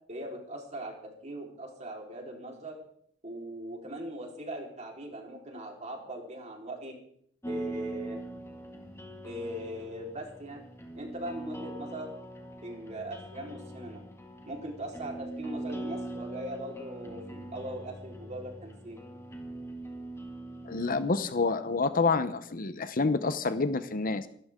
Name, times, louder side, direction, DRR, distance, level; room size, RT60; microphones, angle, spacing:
voice 1, 0.1-0.9 1.2-2.8 3.2-6.9 7.5-8.2 9.2-10.6 10.9-12.1 12.6-14.0 14.4-19.0, right 1 dB, 40° right, 0 dB, 4.2 m, -40 dB
sound 1, 7.4-21.1, right 1 dB, 15° left, 2.0 m, -42 dB
voice 2, 20.7-24.3, left 4 dB, 50° left, 12 dB, 0.9 m, -28 dB
25.0 x 13.0 x 3.8 m, 0.65 s
head